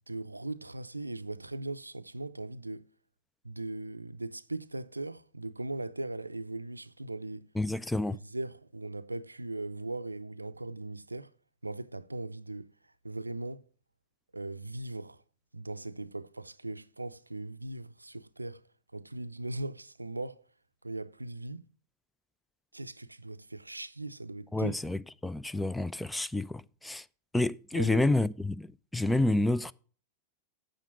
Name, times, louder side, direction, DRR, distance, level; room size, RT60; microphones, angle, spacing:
voice 1, 0.1-2.9 3.4-7.5 8.1-11.3 11.6-12.7 13.0-13.6 14.3-15.2 15.5-18.6 18.9-20.4 20.8-21.7 22.7-24.7 27.7-28.0, right 2 dB, 85° right, 0.5 m, -39 dB
voice 2, 7.6-8.2 24.5-27.0 27.3-29.7, left 2 dB, 5° left, 0.3 m, -29 dB
9.0 x 6.7 x 5.8 m
figure-of-eight pair, 90°, 0 cm